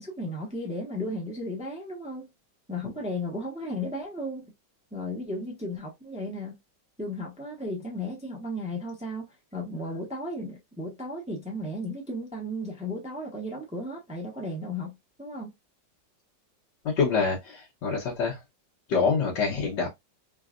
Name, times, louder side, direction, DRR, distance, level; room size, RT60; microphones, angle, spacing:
voice 1, 0.0-2.3 2.7-4.5 4.9-6.6 7.0-9.3 9.5-15.5, left 1 dB, 5° right, 0.6 m, -34 dB
voice 2, 16.8-18.4 18.9-19.9, left 5 dB, 70° left, 1.8 m, -26 dB
3.9 x 2.3 x 2.4 m
omnidirectional pair, 1.9 m